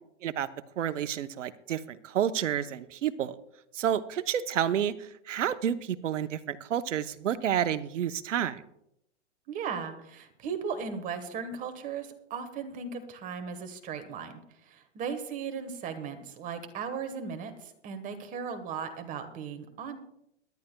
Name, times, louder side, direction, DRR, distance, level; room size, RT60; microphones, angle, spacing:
voice 1, 0.8-3.4 3.7-8.6, right 9 dB, 90° right, 13 dB, 0.8 m, -30 dB
voice 2, 9.5-20.0, right 6 dB, 20° right, 8 dB, 1.2 m, -37 dB
22.0 x 11.5 x 2.2 m, 0.79 s
hypercardioid pair, 140°, 36 cm